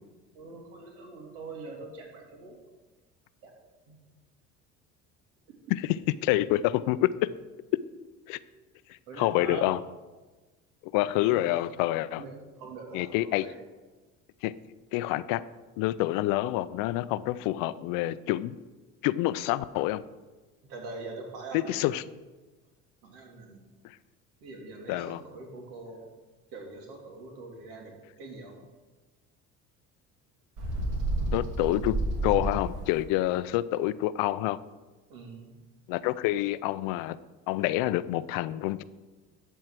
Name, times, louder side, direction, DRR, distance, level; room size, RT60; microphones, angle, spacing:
voice 1, 0.3-2.6 3.4-3.5 3.9-4.0 8.3-8.4 9.1-9.7 11.3-11.5 12.2-13.6 20.6-21.8 23.0-23.6 24.4-26.1 26.5-28.5 35.1-35.6, right 3 dB, 85° right, 3.1 m, -43 dB
voice 2, 5.7-7.3 8.3-8.4 9.2-9.8 10.9-12.2 12.9-13.5 14.4-14.5 14.9-15.4 15.8-18.6 19.0-20.1 21.5-22.0 24.9-25.2 31.3-31.9 32.2-34.6 35.9-37.2 37.5-38.8, left 15 dB, 80° left, 0.6 m, -27 dB
Bird, 30.6-33.0, right 2 dB, 65° right, 2.7 m, -30 dB
12.5 x 4.7 x 7.5 m
cardioid pair, 105°, 33 cm